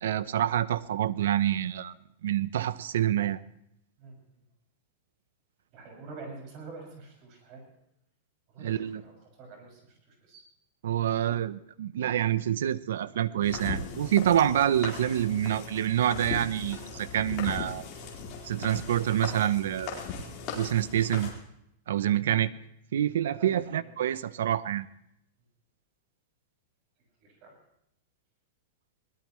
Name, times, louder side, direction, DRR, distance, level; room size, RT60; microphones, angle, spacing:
voice 1, 0.0-1.9 2.2-3.4 8.6-9.0 10.8-17.8 18.4-20.0 20.5-21.3 21.9-22.5 22.9-24.9, right 11 dB, 85° right, 16 dB, 0.7 m, -27 dB
voice 2, 4.0-4.4 5.7-7.7 8.5-10.4 22.2-22.4 23.4-24.0 27.2-27.5, right 3 dB, 35° right, 0 dB, 6.5 m, -47 dB
sound 1, 13.4-21.3, left 5 dB, 35° left, 4.3 m, -38 dB
21.5 x 19.0 x 3.2 m, 0.77 s
supercardioid pair, 170°, 0 cm